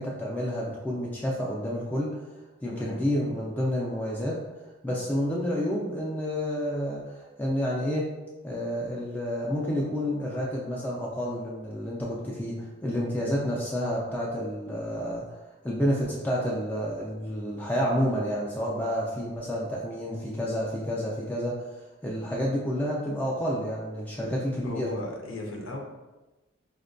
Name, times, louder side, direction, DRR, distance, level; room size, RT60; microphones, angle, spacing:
voice 1, 0.0-2.2 2.6-4.4 4.8-8.1 8.4-15.4 15.6-21.7 22.0-24.9, equal, 10° left, -5 dB, 0.3 m, -29 dB
voice 2, 2.7-3.0 15.0-15.2 24.6-25.8, left 2 dB, 80° left, 1 dB, 0.6 m, -37 dB
5.1 x 2.1 x 2.5 m, 1.1 s
head